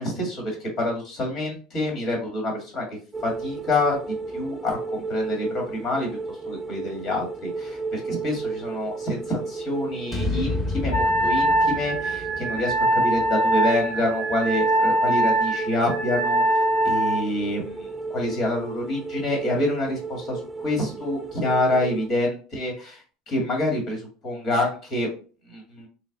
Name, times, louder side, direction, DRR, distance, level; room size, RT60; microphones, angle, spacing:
voice 1, 0.0-6.2 6.4-25.1 25.5-25.9, left 1 dB, 50° left, 0 dB, 1.4 m, -27 dB
sound 1, 3.1-22.1, right 4 dB, 15° right, 0.5 m, -34 dB
sound 2, 10.1-14.3, left 3 dB, 15° left, 1.0 m, -32 dB
Wind instrument woodwind instrument, 10.9-17.2, right 1 dB, 90° left, 1.4 m, -23 dB
3.2 x 2.0 x 3.6 m, 0.38 s
hypercardioid pair, 90°, 0 cm